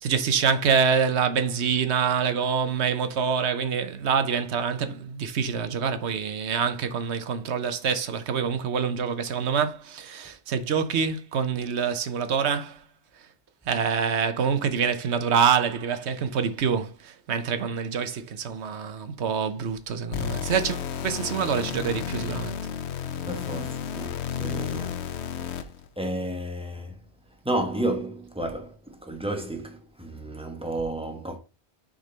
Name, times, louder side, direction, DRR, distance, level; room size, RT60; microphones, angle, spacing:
voice 1, 0.0-12.8 13.7-22.6, right 6 dB, 80° right, 1.1 m, -26 dB
sound 1, 20.1-25.9, left 8 dB, 80° left, 0.9 m, -32 dB
voice 2, 23.2-25.1 25.4-25.7 26.0-27.0 27.4-31.4, right 1 dB, 5° right, 1.0 m, -32 dB
6.2 x 4.0 x 4.0 m
omnidirectional pair, 1.1 m